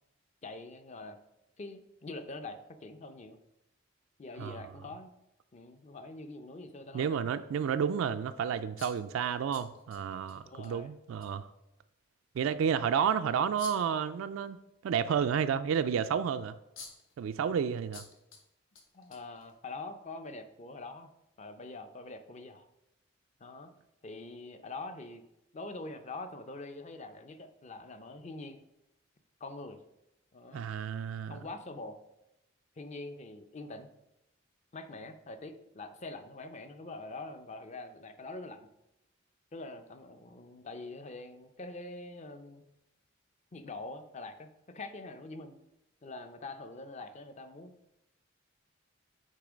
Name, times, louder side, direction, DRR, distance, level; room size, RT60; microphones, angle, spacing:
voice 1, 0.4-1.2 1.6-3.4 4.2-5.1 5.5-7.3 10.4-10.9 18.9-21.1 21.4-22.7 23.4-23.7 24.0-25.2 25.5-28.6 29.4-29.8 30.3-30.7 31.3-32.0 32.8-33.9 34.7-38.7 39.5-42.6 43.5-45.6 46.0-47.7, left 2 dB, 35° left, 0.5 m, -44 dB
voice 2, 6.9-11.5 12.4-14.6 14.8-16.5 17.2-18.0 30.5-31.4, right 7 dB, 85° right, 0.3 m, -31 dB
sound 1, 8.8-10.3 10.6-10.7 11.2-11.3 13.6-14.0 16.3-16.4 16.8-17.2 17.9-18.4 18.8-19.7, left 5 dB, 75° left, 1.2 m, -48 dB
8.4 x 3.1 x 5.0 m
head